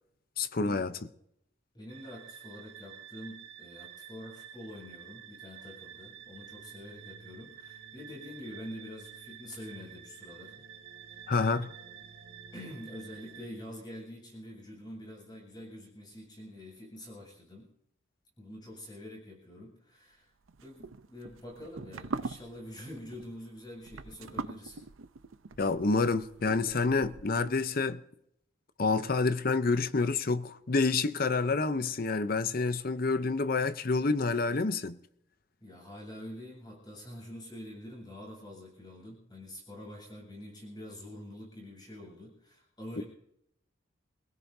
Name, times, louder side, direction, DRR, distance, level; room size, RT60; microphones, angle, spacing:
voice 1, 0.4-1.0 11.3-11.7 25.6-28.0 28.8-35.0 43.0-43.1, left 3 dB, 45° left, 0.7 m, -28 dB
voice 2, 1.7-10.7 11.1-11.5 12.1-12.2 12.5-17.7 18.4-20.3 20.6-24.8 35.6-43.0, left 1 dB, 20° left, 7.9 m, -46 dB
sound 1, 1.9-13.5, right 8 dB, 55° right, 2.5 m, -50 dB
sound 2, 20.5-27.5, right 3 dB, 80° right, 0.7 m, -42 dB
27.5 x 16.5 x 2.7 m
head